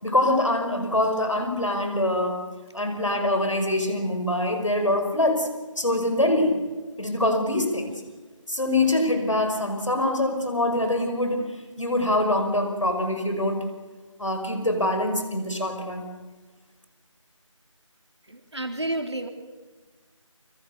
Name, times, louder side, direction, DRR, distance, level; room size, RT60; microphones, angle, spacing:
voice 1, 0.0-2.4 2.7-5.5 5.8-6.6 7.0-7.9 8.5-13.6 14.2-16.1, left 1 dB, 70° left, 5 dB, 6.0 m, -24 dB
voice 2, 18.3-19.3, right 1 dB, 55° right, 5 dB, 3.7 m, -30 dB
28.5 x 24.0 x 6.7 m, 1.3 s
figure-of-eight pair, 180°, 17 cm